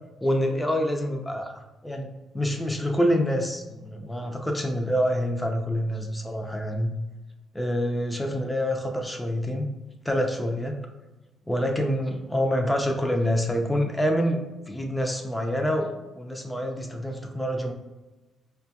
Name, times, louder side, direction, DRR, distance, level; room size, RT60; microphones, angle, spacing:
voice 1, 0.2-6.9 7.5-9.7 10.0-10.8 11.5-14.4 14.7-17.7, equal, 10° left, 3 dB, 0.5 m, -26 dB
4.8 x 2.3 x 2.8 m, 1.1 s
cardioid pair, 90°, 0 cm